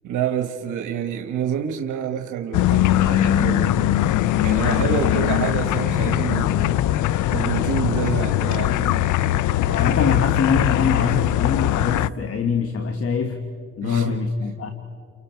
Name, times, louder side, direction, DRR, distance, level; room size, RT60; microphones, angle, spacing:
voice 1, 0.0-3.9 4.4-6.8 7.3-9.0 13.8-14.1, right 9 dB, 80° right, 6 dB, 1.2 m, -28 dB
sound 1, 2.5-12.1, left 13 dB, 75° left, 0.5 m, -21 dB
voice 2, 4.8-5.2 9.6-13.5 13.8-14.7, left 5 dB, 50° left, 7 dB, 1.4 m, -24 dB
29.5 x 26.0 x 4.5 m, 2.3 s
cardioid pair, 90°, 30 cm